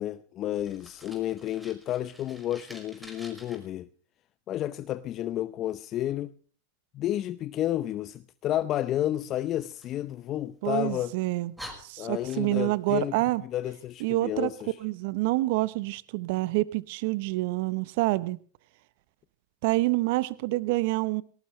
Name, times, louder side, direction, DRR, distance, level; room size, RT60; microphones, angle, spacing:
voice 1, 0.0-3.9 4.5-6.3 6.9-11.1 12.0-13.2 13.4-14.7, left 13 dB, 40° left, 0.8 m, -31 dB
Fire, 0.6-3.6 9.5-10.7 11.2-11.3 11.6-12.8, equal, 5° right, 5.3 m, -48 dB
voice 2, 10.6-11.5 11.8-13.4 14.0-14.5 14.8-18.4 19.6-21.2, right 20 dB, 65° right, 0.9 m, -27 dB
19.0 x 18.5 x 3.2 m
hypercardioid pair, 110°, 0 cm